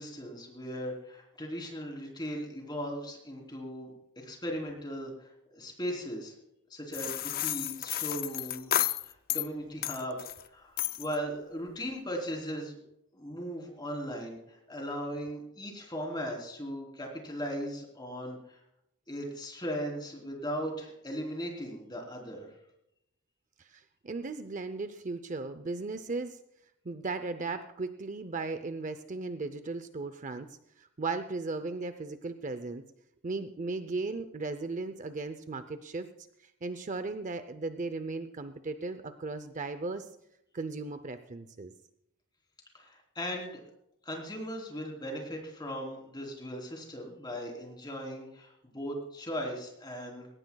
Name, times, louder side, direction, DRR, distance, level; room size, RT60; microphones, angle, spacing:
voice 1, 0.0-6.3 6.7-10.2 10.5-12.8 13.1-18.6 19.1-22.5 42.7-43.6 44.1-50.3, equal, 20° left, 1 dB, 3.4 m, -38 dB
sound 1, 6.9-9.5 9.8-10.4 10.8-11.2, left 12 dB, 45° left, 0.5 m, -32 dB
voice 2, 23.6-26.4 26.8-32.8 33.2-36.1 36.4-40.1 40.5-41.7, right 3 dB, 35° right, 10 dB, 0.6 m, -36 dB
19.0 x 17.5 x 2.3 m, 0.80 s
head